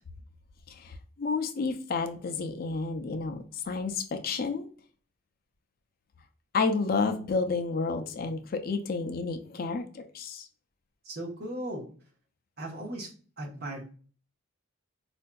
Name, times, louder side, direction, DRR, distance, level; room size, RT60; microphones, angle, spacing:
voice 1, 0.7-4.7 6.5-10.5, left 4 dB, 45° left, 6 dB, 0.4 m, -30 dB
voice 2, 11.0-11.9 12.6-13.1 13.4-13.9, right 1 dB, 50° right, -1 dB, 1.0 m, -37 dB
4.4 x 2.5 x 2.2 m, 0.41 s
head